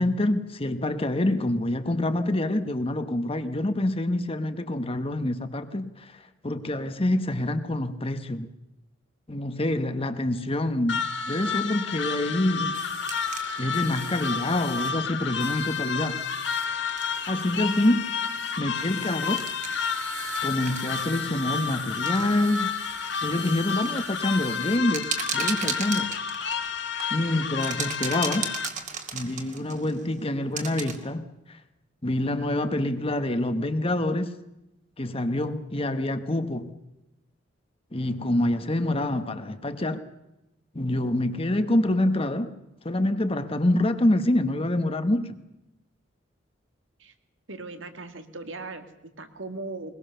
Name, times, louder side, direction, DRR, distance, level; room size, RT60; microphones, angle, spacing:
voice 1, 0.0-8.5 9.3-12.8 13.6-16.2 16.6-16.8 17.3-18.1 18.6-19.4 20.4-22.7 23.2-26.1 27.1-28.5 29.1-31.6 32.0-34.3 35.0-36.7 37.9-40.0 40.7-42.5 42.8-45.4, left 1 dB, 30° left, 1.2 m, -26 dB
sound 1, 10.9-28.7, left 6 dB, 65° left, 1.8 m, -30 dB
sound 2, 12.7-31.0, right 6 dB, 40° right, 2.4 m, -39 dB
voice 2, 47.5-49.9, right 3 dB, 80° right, 2.1 m, -39 dB
21.5 x 21.5 x 6.8 m
head